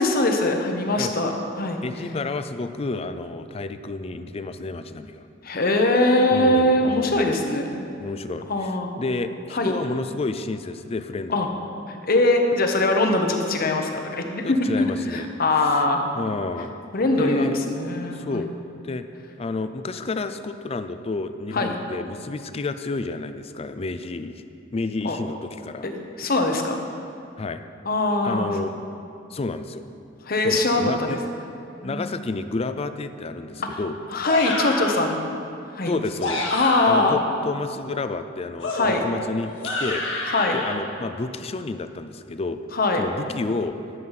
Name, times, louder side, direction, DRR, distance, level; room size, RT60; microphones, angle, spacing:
voice 1, 0.0-1.8 5.4-7.9 8.5-8.9 9.5-9.7 11.3-11.5 11.9-16.4 16.9-18.5 21.5-21.7 25.0-25.2 25.8-26.8 27.8-28.5 30.3-31.2 31.8-32.2 33.6-33.8 34.1-35.4 35.7-36.0 36.5-37.2 38.7-39.0 40.3-40.6 42.7-43.0, left 2 dB, 50° left, 4 dB, 1.0 m, -22 dB
voice 2, 1.8-5.2 6.3-7.4 8.0-11.4 14.4-15.3 15.5-15.8 16.1-16.8 17.2-17.6 18.1-18.5 18.8-19.0 19.4-24.4 24.7-25.9 27.4-27.6 28.2-28.9 29.3-29.8 30.4-31.2 31.8-34.0 35.9-36.5 36.9-40.0 40.5-42.6 43.0-43.8, left 3 dB, 30° left, 10 dB, 0.4 m, -30 dB
sound 1, 34.2-35.1 36.0-37.2 38.6-40.7, left 2 dB, 70° left, 1.9 m, -28 dB
11.0 x 7.8 x 5.7 m, 2.7 s
head